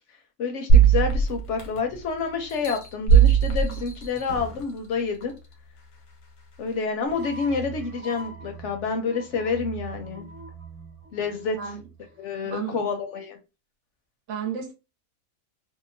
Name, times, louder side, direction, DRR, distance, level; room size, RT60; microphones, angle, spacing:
voice 1, 0.4-5.3 6.6-10.3 11.1-11.6 12.2-13.4, left 5 dB, 65° left, 0.8 m, -28 dB
sound 1, 0.7-2.0 2.5-4.6 5.2-5.3, right 6 dB, 85° left, 1.2 m, -19 dB
sound 2, 7.1-12.3, right 4 dB, 40° right, 0.5 m, -41 dB
voice 2, 12.4-12.9 14.3-14.7, right 7 dB, 65° right, 1.0 m, -32 dB
2.8 x 2.1 x 2.5 m
omnidirectional pair, 1.5 m